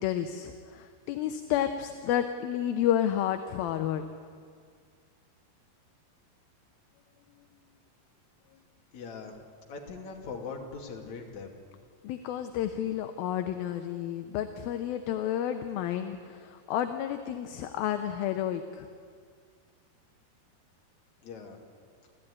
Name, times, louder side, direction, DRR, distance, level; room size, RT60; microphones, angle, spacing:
voice 1, 0.0-4.0 12.0-18.9, left 10 dB, 75° left, 7 dB, 2.5 m, -31 dB
voice 2, 8.9-9.4 9.7-11.6 21.2-21.6, left 4 dB, 50° left, 1 dB, 3.5 m, -41 dB
28.5 x 13.5 x 9.8 m, 2.1 s
omnidirectional pair, 4.7 m